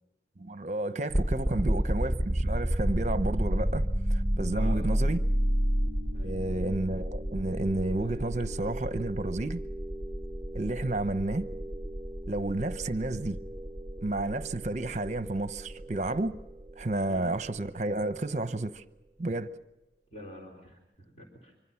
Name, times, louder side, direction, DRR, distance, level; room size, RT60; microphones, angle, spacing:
voice 1, 0.4-5.2 6.2-9.6 10.5-11.4 12.3-13.4 14.0-16.4 16.8-18.8 19.2-19.5, right 2 dB, 40° right, 0.8 m, -31 dB
sound 1, 1.1-18.0, equal, ahead, 1.0 m, -31 dB
voice 2, 4.5-4.9 6.1-6.4 17.1-17.3 20.1-21.6, left 1 dB, 40° left, 4.0 m, -47 dB
25.0 x 25.0 x 5.7 m
head